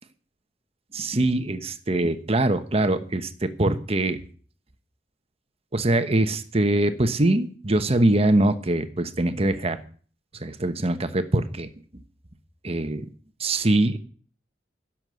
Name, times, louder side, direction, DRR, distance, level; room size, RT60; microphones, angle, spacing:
voice 1, 0.9-4.2 5.7-9.8 10.3-12.0 12.6-13.1 13.4-14.0, right 1 dB, 35° right, 10 dB, 1.1 m, -23 dB
11.5 x 7.4 x 9.4 m, 0.43 s
head